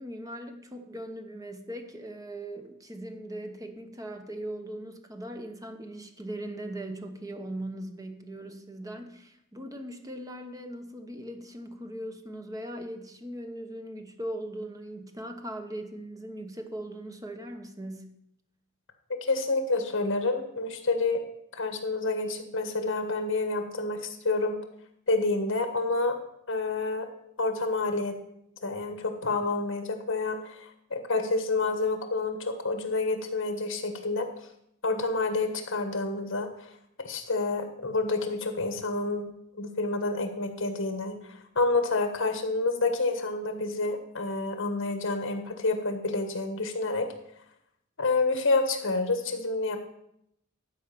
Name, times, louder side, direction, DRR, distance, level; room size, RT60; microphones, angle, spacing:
voice 1, 0.0-18.1, right 1 dB, 15° right, 6 dB, 1.0 m, -39 dB
voice 2, 19.1-21.2 21.5-24.6 25.1-26.2 26.5-27.1 27.4-28.2 28.6-34.3 34.8-36.7 37.0-39.3 39.6-47.1 48.0-49.8, left 3 dB, 65° left, 6 dB, 1.5 m, -28 dB
12.0 x 5.0 x 6.9 m, 0.77 s
head